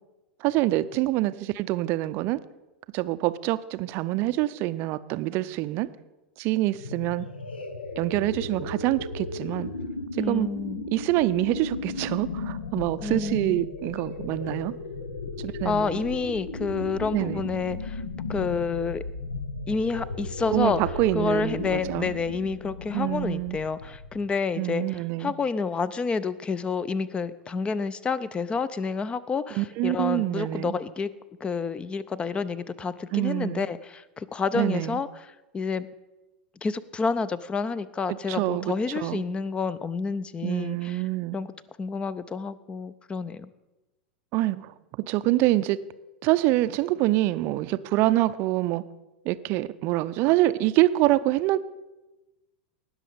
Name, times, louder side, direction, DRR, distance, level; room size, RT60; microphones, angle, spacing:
voice 1, 0.4-2.4 2.9-5.9 6.4-7.3 8.0-9.7 10.1-10.5 10.9-14.7 15.4-16.0 17.1-17.4 20.5-22.1 22.9-23.6 24.6-25.3 29.5-30.7 33.1-33.6 34.5-35.0 38.1-39.2 40.4-41.4 44.3-45.8 46.2-48.8 49.2-51.6, right 16 dB, 45° right, 14 dB, 0.5 m, -26 dB
sound 1, 6.7-24.3, left 3 dB, 80° left, 0.9 m, -35 dB
voice 2, 10.2-10.8 13.0-13.6 15.6-18.0 18.3-19.0 19.7-20.8 21.1-31.1 31.4-35.1 35.5-35.9 36.6-41.0 41.3-41.5 41.8-43.5, left 5 dB, 20° left, 17 dB, 0.5 m, -29 dB
18.5 x 6.3 x 5.1 m, 1.1 s
figure-of-eight pair, 90°, 5 cm